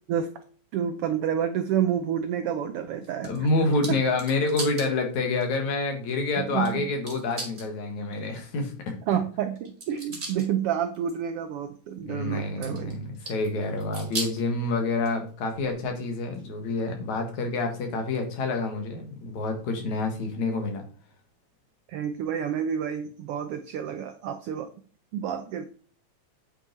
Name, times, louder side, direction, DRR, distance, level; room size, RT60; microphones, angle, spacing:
voice 1, 0.7-3.3 3.9-4.0 6.4-6.9 9.1-13.0 21.9-24.7 25.1-25.6, right 9 dB, 80° right, 9 dB, 1.3 m, -29 dB
sound 1, 3.0-4.9 5.4-5.5 6.6-6.7 7.1-7.7 9.5-10.5 10.9-11.2 12.6-13.5 13.8-14.4 15.0-15.9 16.3-16.4 17.3-17.4, right 2 dB, 25° right, 2.1 m, -37 dB
voice 2, 3.2-8.9 12.0-20.8, left 3 dB, 75° left, 4 dB, 3.0 m, -28 dB
8.6 x 5.5 x 4.5 m, 0.43 s
omnidirectional pair, 3.4 m